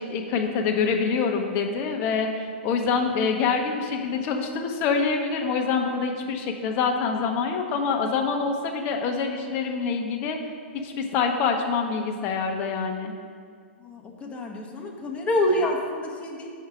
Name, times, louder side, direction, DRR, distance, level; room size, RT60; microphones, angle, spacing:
voice 1, 0.0-13.1, left 5 dB, 40° left, 3 dB, 1.0 m, -26 dB
voice 2, 13.8-16.5, left 1 dB, 20° left, 1 dB, 1.1 m, -27 dB
7.2 x 5.6 x 5.0 m, 2.1 s
hypercardioid pair, 120°, 6 cm